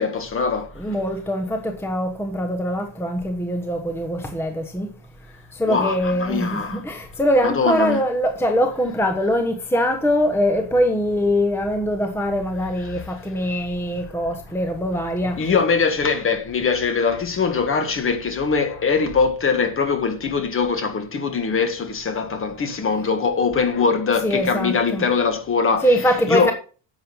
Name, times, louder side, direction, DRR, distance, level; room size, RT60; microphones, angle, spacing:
voice 1, 0.0-1.0 5.7-6.8 7.4-8.0 12.8-13.0 15.4-25.9 26.3-26.5, left 5 dB, 25° left, 1.6 m, -22 dB
voice 2, 0.8-4.9 5.5-15.5 24.2-25.1 25.8-26.5, equal, 5° left, 1.1 m, -22 dB
10.5 x 7.7 x 5.5 m
cardioid pair, 160°, 47 cm